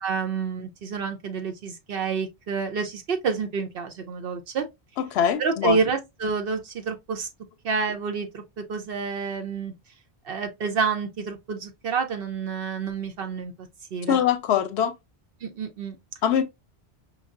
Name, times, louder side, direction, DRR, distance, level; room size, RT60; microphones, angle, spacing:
voice 1, 0.0-4.7 5.4-7.3 7.6-9.7 10.2-13.5 13.9-14.2 15.4-16.0, right 5 dB, 65° right, 0.8 m, -28 dB
voice 2, 5.0-5.8 14.1-14.9 16.2-16.4, left 9 dB, 90° left, 0.8 m, -22 dB
5.2 x 2.3 x 2.4 m
omnidirectional pair, 1.1 m